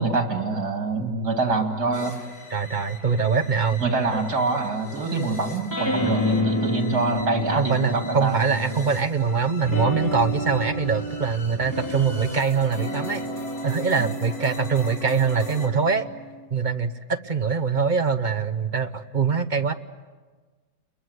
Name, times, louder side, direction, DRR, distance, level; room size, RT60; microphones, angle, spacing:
voice 1, 0.0-2.1 3.8-8.4 14.0-14.1, right 3 dB, 85° right, 3 dB, 3.1 m, -25 dB
sound 1, 1.9-15.7, left 2 dB, 65° left, 4.1 m, -42 dB
voice 2, 2.5-3.8 7.6-13.2 13.6-16.1 16.5-19.7, right 5 dB, 35° right, 9 dB, 0.9 m, -23 dB
sound 2, 5.7-9.1 9.6-16.4, left 1 dB, 10° left, 3.3 m, -30 dB
30.0 x 22.5 x 8.0 m, 1.4 s
omnidirectional pair, 1.7 m